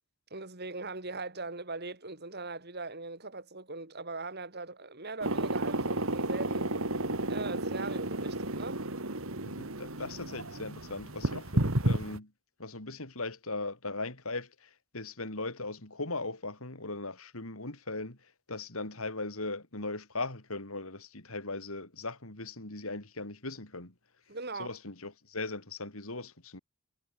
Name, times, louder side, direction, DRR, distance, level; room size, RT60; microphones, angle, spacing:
voice 1, 0.3-6.7 7.3-8.8 24.3-24.7, right 3 dB, 45° right, 3.7 m, -40 dB
sound 1, 5.2-12.2, right 1 dB, 65° right, 2.8 m, -32 dB
voice 2, 9.4-12.3 12.6-18.2 18.5-23.9 24.6-26.6, left 3 dB, 70° left, 4.1 m, -39 dB
head